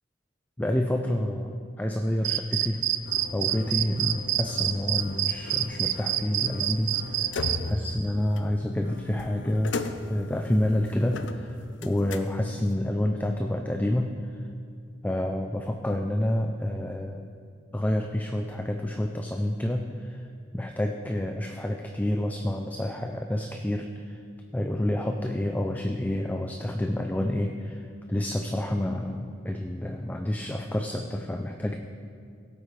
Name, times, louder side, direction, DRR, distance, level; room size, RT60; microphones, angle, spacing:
voice 1, 0.6-2.9 3.3-7.3 7.6-9.8 10.1-14.5 15.0-17.3 17.7-20.2 20.5-24.2 24.5-27.8 28.1-31.8, left 1 dB, 10° left, 4 dB, 0.4 m, -28 dB
sound 1, 2.2-7.6, right 13 dB, 80° right, 0.4 m, -26 dB
sound 2, 3.1-12.7, left 3 dB, 85° left, 0.6 m, -38 dB
16.5 x 8.6 x 3.3 m, 2.3 s
head